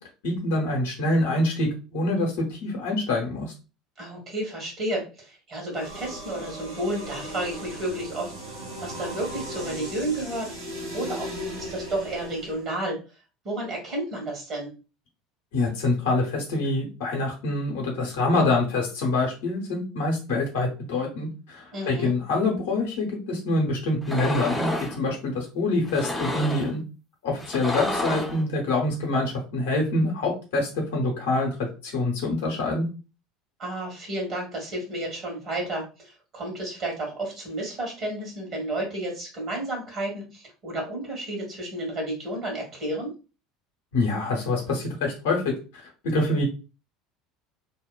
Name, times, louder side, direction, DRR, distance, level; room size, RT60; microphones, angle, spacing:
voice 1, 0.2-3.5 15.5-26.8 27.2-32.9 43.9-45.4 45.7-46.4, left 2 dB, 65° left, 0 dB, 0.8 m, -26 dB
voice 2, 4.0-10.5 10.9-13.0 13.4-14.7 21.7-22.1 33.6-43.1, right 1 dB, 45° right, -1 dB, 1.3 m, -32 dB
sound 1, 5.7-12.7, equal, 80° right, 0.9 m, -37 dB
sound 2, 24.0-25.0 25.8-26.7 27.4-28.4, left 1 dB, 5° left, 0.6 m, -29 dB
2.8 x 2.1 x 2.2 m, 0.32 s
figure-of-eight pair, 70°, 0 cm